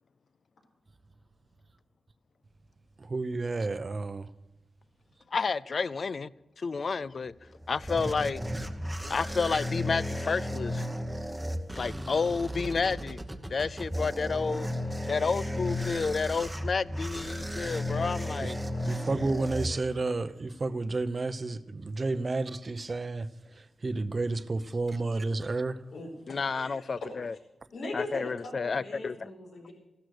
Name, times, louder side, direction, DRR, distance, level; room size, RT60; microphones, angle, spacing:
voice 1, 3.0-4.3 18.4-18.5 18.8-25.8, right 3 dB, 30° right, 0.8 m, -31 dB
voice 2, 5.3-6.3 6.6-7.3 7.7-8.4 9.1-10.8 11.8-13.2 13.5-14.7 15.1-18.6 26.3-27.3 27.9-29.3, left 4 dB, 40° left, 0.4 m, -30 dB
sound 1, 7.3-20.3, left 1 dB, 5° right, 1.0 m, -34 dB
voice 3, 25.9-26.9 27.7-29.7, left 2 dB, 75° left, 4.8 m, -40 dB
14.5 x 12.5 x 6.6 m
wide cardioid pair, 145°, 0 cm